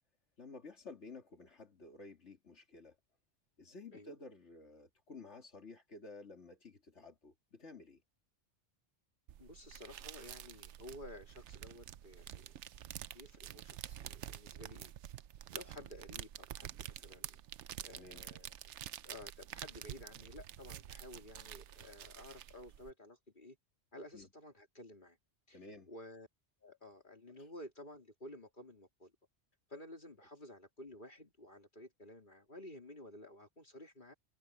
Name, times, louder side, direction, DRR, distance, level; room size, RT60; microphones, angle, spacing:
voice 1, 0.4-3.0 3.6-8.0 18.0-18.2 24.1-24.3 25.5-25.9 27.4-27.5, left 3 dB, 80° left, 2.9 m, -53 dB
sound 1, 9.3-22.9, right 11 dB, 80° right, 0.9 m, -48 dB
voice 2, 9.4-12.5 13.1-14.9 15.5-17.4 17.8-18.5 19.0-23.6 23.9-25.2 25.5-25.6 25.9-26.3 26.6-29.1 29.7-34.1, left 1 dB, 45° left, 3.7 m, -53 dB
omnidirectional pair, 1.2 m